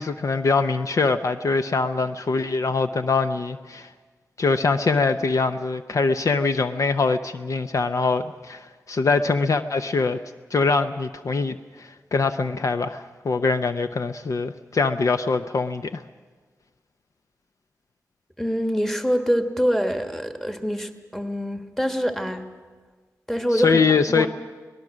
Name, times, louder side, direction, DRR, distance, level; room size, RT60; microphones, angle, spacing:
voice 1, 0.0-3.9 4.4-10.2 10.5-16.0 23.5-24.3, left 4 dB, 55° left, 9 dB, 0.6 m, -23 dB
voice 2, 18.4-22.5 23.3-23.8 24.1-24.3, equal, 5° left, 6 dB, 1.4 m, -25 dB
24.0 x 18.5 x 6.3 m, 1.4 s
wide cardioid pair, 105°, 6 cm